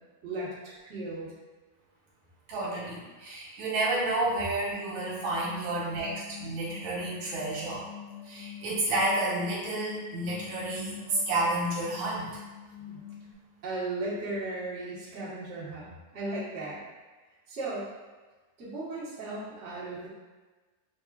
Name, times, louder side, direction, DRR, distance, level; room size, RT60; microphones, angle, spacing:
voice 1, 0.2-1.3 12.9-13.0 13.6-16.8 17.5-17.9 18.6-20.1, right 2 dB, 50° right, -9 dB, 0.8 m, -36 dB
voice 2, 2.5-7.8 8.2-12.3, right 2 dB, 70° right, -6 dB, 2.2 m, -30 dB
sound 1, 4.1-13.3, left 10 dB, 85° left, 2.0 m, -46 dB
7.0 x 2.4 x 2.4 m, 1.3 s
omnidirectional pair, 3.4 m